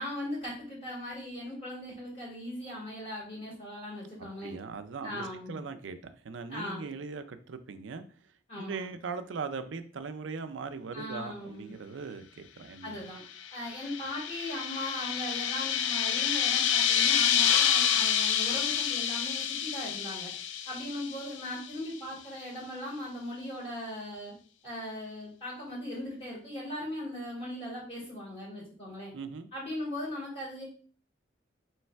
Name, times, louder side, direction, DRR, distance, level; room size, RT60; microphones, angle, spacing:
voice 1, 0.0-4.5 5.0-5.6 6.5-6.8 8.5-8.9 10.9-11.7 12.8-13.2 13.5-20.3 20.6-24.3 24.6-29.1 29.5-30.6, left 1 dB, 35° left, -6 dB, 1.9 m, -39 dB
voice 2, 4.4-8.0 8.6-13.0 29.1-29.5, right 5 dB, 90° right, 9 dB, 0.5 m, -40 dB
sound 1, 13.4-21.7, left 9 dB, 90° left, 0.4 m, -28 dB
3.2 x 3.2 x 4.4 m, 0.42 s
head